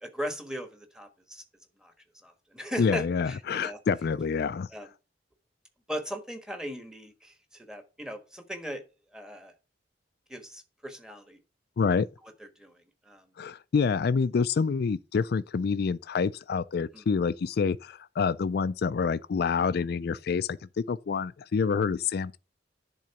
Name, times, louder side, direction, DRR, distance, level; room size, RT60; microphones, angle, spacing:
voice 1, 0.0-1.4 1.8-1.9 2.2-3.8 4.7-4.9 5.9-8.8 9.1-9.5 10.3-11.4 12.6-12.7 13.0-13.2 16.9-17.0, equal, 5° right, 1.4 m, -38 dB
voice 2, 2.8-4.7 11.8-12.1 13.4-20.6 20.9-22.4, left 5 dB, 60° left, 0.4 m, -27 dB
10.5 x 3.9 x 5.7 m
head